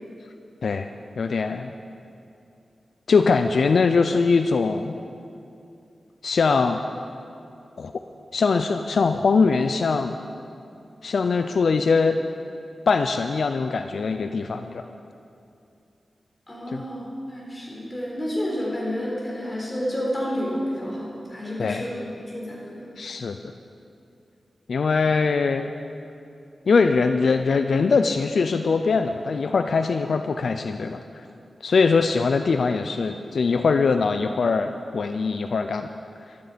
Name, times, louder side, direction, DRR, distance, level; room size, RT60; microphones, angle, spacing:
voice 1, 1.2-1.7 3.1-4.9 6.2-6.8 7.8-7.9 8.3-10.2 11.0-12.2 12.9-14.8 16.7-16.8 21.6-21.8 23.0-23.4 24.7-25.7 26.7-31.3 31.6-35.9, left 4 dB, 70° left, 7 dB, 0.4 m, -22 dB
voice 2, 16.5-22.9, equal, 20° left, -5 dB, 4.0 m, -30 dB
15.0 x 12.5 x 5.1 m, 2.6 s
wide cardioid pair, 150°, 0 cm